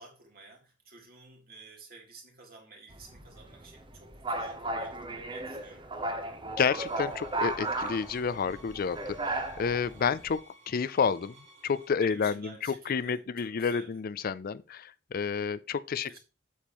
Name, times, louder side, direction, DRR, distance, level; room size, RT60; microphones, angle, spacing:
voice 1, 0.0-5.9 12.0-13.9 16.1-16.2, right 3 dB, 50° right, 3.0 m, -52 dB
sound 1, 2.9-10.3, right 2 dB, 25° right, 1.0 m, -36 dB
voice 2, 6.5-9.0 9.2-10.4 10.7-11.3 11.6-16.2, left 6 dB, 50° left, 0.4 m, -30 dB
sound 2, 6.8-11.9, right 1 dB, 75° right, 3.2 m, -56 dB
8.3 x 7.2 x 3.0 m
head